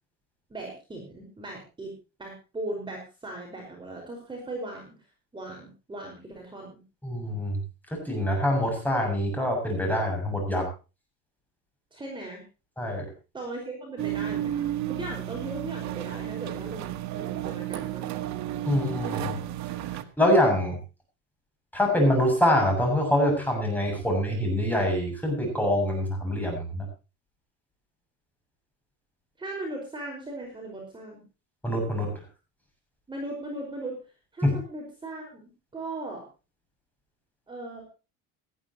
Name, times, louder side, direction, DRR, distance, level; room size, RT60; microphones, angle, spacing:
voice 1, 0.5-1.9 2.2-4.9 5.3-6.8 11.9-12.4 13.3-18.3 29.4-31.2 33.1-34.0 34.3-36.3 37.5-37.8, right 2 dB, 15° right, 0 dB, 5.2 m, -38 dB
voice 2, 7.0-7.6 7.9-10.7 12.8-13.1 18.7-19.4 20.2-20.8 21.7-26.9 31.6-32.2 34.4-34.6, left 1 dB, 5° left, 1 dB, 7.7 m, -25 dB
sound 1, 14.0-20.0, right 12 dB, 75° right, 1.6 m, -32 dB
18.5 x 14.0 x 3.0 m, 0.31 s
cardioid pair, 150°, 29 cm